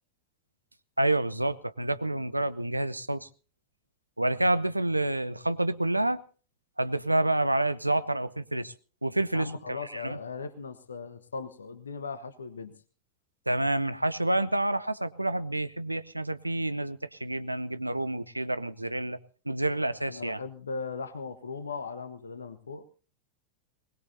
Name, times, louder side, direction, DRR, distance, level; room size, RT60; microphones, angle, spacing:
voice 1, 1.0-3.3 4.2-6.2 6.8-8.7 9.0-10.2 13.5-19.2 19.5-20.4, right 1 dB, 85° right, 15 dB, 0.7 m, -28 dB
voice 2, 9.3-12.7 20.0-22.9, left 4 dB, 70° left, 11 dB, 1.2 m, -38 dB
21.0 x 20.0 x 2.7 m, 0.37 s
figure-of-eight pair, 90°, 0 cm